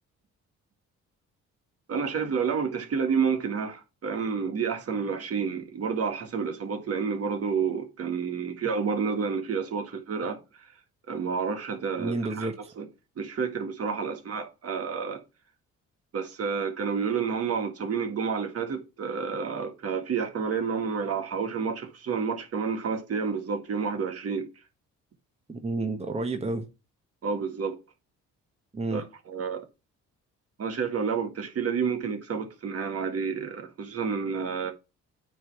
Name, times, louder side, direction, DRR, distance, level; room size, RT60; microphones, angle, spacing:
voice 1, 1.9-10.4 11.1-12.9 13.2-15.2 16.1-24.5 27.2-27.8 28.9-29.6 30.6-34.7, right 6 dB, 50° right, 1.8 m, -30 dB
voice 2, 12.0-12.7 25.5-26.6 28.7-29.0, right 2 dB, 20° right, 1.2 m, -30 dB
9.0 x 3.2 x 6.0 m
cardioid pair, 90°, 30 cm